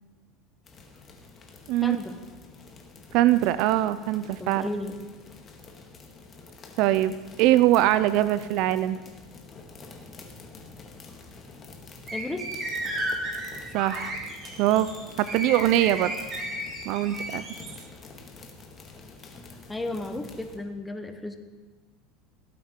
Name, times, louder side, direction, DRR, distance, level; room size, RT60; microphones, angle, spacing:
sound 1, 0.6-20.6, left 3 dB, 30° left, 1.9 m, -47 dB
voice 1, 1.8-2.2 4.4-5.0 12.1-12.4 19.7-21.4, left 2 dB, 10° left, 7 dB, 1.1 m, -33 dB
voice 2, 3.1-4.7 6.8-9.0 13.7-14.2 14.6-14.9 15.2-16.1 16.9-17.4, right 14 dB, 60° right, 14 dB, 0.5 m, -22 dB
sound 2, 12.1-17.7, right 1 dB, 30° right, 3.8 m, -34 dB
17.5 x 8.3 x 4.5 m, 1.3 s
supercardioid pair, 125°, 0 cm